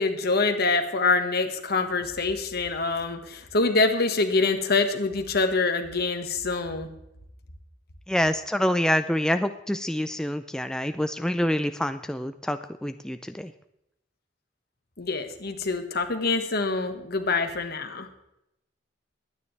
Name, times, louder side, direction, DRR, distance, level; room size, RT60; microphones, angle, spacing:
voice 1, 0.0-6.9 15.0-18.1, left 3 dB, 55° left, 6 dB, 1.6 m, -25 dB
voice 2, 8.1-13.5, equal, 5° left, 9 dB, 0.4 m, -26 dB
22.0 x 9.5 x 3.4 m, 0.84 s
head